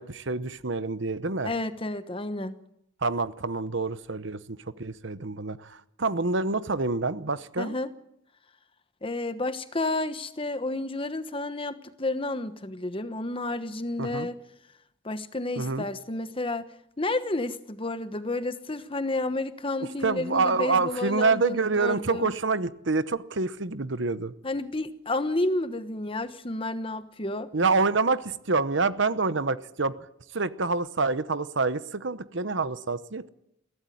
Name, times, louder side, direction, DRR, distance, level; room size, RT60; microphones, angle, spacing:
voice 1, 0.0-1.5 3.0-7.7 14.0-14.3 15.6-15.8 20.0-24.3 27.5-30.0 30.3-33.3, right 3 dB, 65° right, 14 dB, 1.0 m, -27 dB
voice 2, 1.4-2.6 7.6-7.9 9.0-14.4 15.0-16.7 17.0-22.3 24.4-27.5, left 2 dB, 25° left, 11 dB, 1.1 m, -31 dB
22.5 x 16.5 x 9.3 m, 0.81 s
head